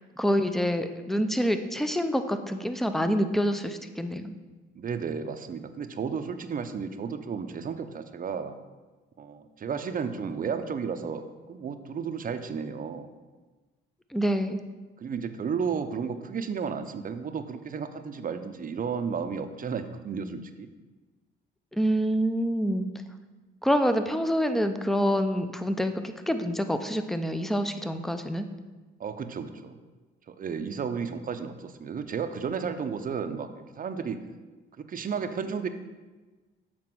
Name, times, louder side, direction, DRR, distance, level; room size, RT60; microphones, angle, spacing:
voice 1, 0.2-4.3 14.1-14.6 21.7-22.9 23.6-25.9 26.3-28.4, equal, ahead, 8 dB, 0.6 m, -26 dB
voice 2, 4.8-8.6 9.2-13.1 15.0-20.7 29.0-29.8 30.3-33.5 33.8-34.2 34.8-35.7, right 6 dB, 45° right, 8 dB, 0.7 m, -33 dB
7.7 x 4.1 x 6.1 m, 1.3 s
cardioid pair, 90°, 20 cm